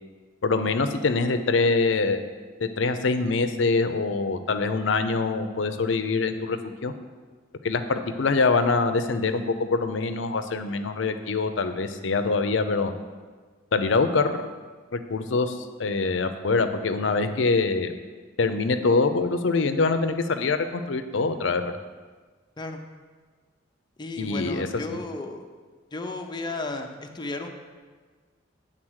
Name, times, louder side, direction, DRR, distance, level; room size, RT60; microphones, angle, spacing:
voice 1, 0.4-2.2 2.6-6.6 6.8-6.9 7.6-12.9 13.7-14.4 14.9-17.9 18.4-21.6 24.2-25.0, left 3 dB, 75° left, 9 dB, 0.6 m, -24 dB
voice 2, 24.0-25.4 25.9-27.5, left 2 dB, 25° left, 3 dB, 0.6 m, -34 dB
8.8 x 4.0 x 6.3 m, 1.5 s
head